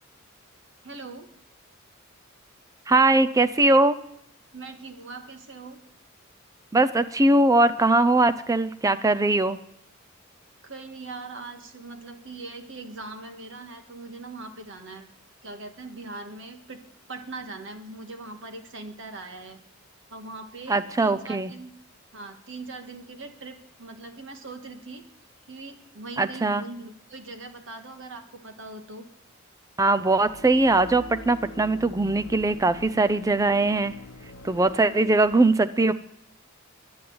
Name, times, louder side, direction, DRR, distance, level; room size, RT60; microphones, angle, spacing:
voice 1, 0.8-1.3 4.5-5.8 10.6-15.0 15.4-16.8 17.1-19.6 20.1-21.7 22.1-25.0 25.5-29.1, right 3 dB, 65° right, 7 dB, 1.7 m, -41 dB
voice 2, 2.9-4.0 6.7-9.6 20.7-21.5 26.2-26.6 29.8-33.9 34.4-35.9, right 2 dB, 15° right, 13 dB, 0.4 m, -21 dB
sound 1, 30.1-35.3, left 1 dB, 65° left, 0.9 m, -44 dB
11.0 x 8.6 x 9.4 m, 0.74 s
head